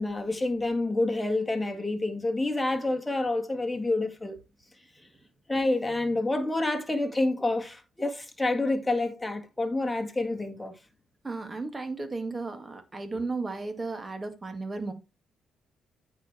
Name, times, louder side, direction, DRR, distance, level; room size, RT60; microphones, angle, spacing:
voice 1, 0.0-4.4 5.5-10.8, left 2 dB, 10° left, 1.9 m, -28 dB
voice 2, 11.2-14.9, right 3 dB, 25° right, 2.0 m, -34 dB
9.0 x 4.8 x 4.4 m
cardioid pair, 90°, 0 cm